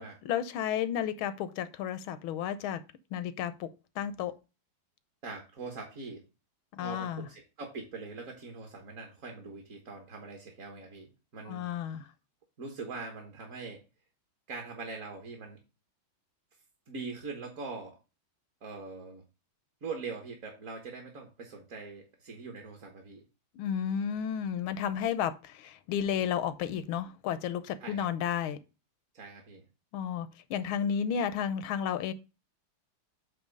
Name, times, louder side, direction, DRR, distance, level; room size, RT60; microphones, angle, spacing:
voice 1, 0.0-2.8 3.1-4.3 6.7-7.3 11.5-12.1 23.6-28.6 29.9-32.1, left 8 dB, 85° left, 1.5 m, -32 dB
voice 2, 5.2-6.2 6.8-12.0 12.6-13.8 14.5-15.6 16.9-18.0 18.6-19.2 19.8-23.2 27.8-28.1 29.1-29.6, right 4 dB, 45° right, 1.5 m, -42 dB
8.4 x 3.0 x 5.3 m
omnidirectional pair, 2.2 m